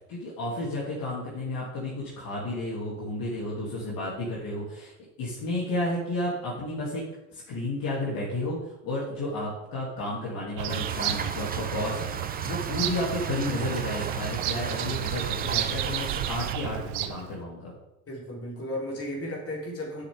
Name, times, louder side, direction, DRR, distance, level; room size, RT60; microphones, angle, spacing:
voice 1, 0.1-4.9 5.2-7.0 7.3-8.6 8.8-17.7, left 1 dB, 50° left, -6 dB, 2.9 m, -32 dB
Bird vocalization bird call bird song, 10.6-17.3, right 13 dB, 65° right, 0.7 m, -32 dB
sound 1, 10.7-16.5, right 5 dB, 20° right, 0.8 m, -36 dB
voice 2, 18.1-20.1, left 1 dB, 30° left, -3 dB, 3.6 m, -35 dB
10.0 x 6.8 x 3.6 m, 0.89 s
figure-of-eight pair, 55°, 44 cm